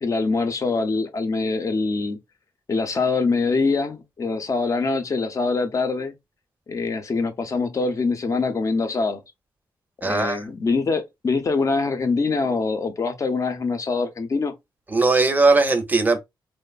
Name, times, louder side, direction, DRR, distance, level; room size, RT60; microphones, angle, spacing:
voice 1, 0.0-2.2 2.7-6.1 6.7-9.2 10.0-14.5, left 4 dB, 40° left, 0.6 m, -24 dB
voice 2, 10.0-10.4 14.9-16.2, right 3 dB, 20° right, 0.6 m, -19 dB
3.0 x 2.0 x 2.4 m
cardioid pair, 105°, 9 cm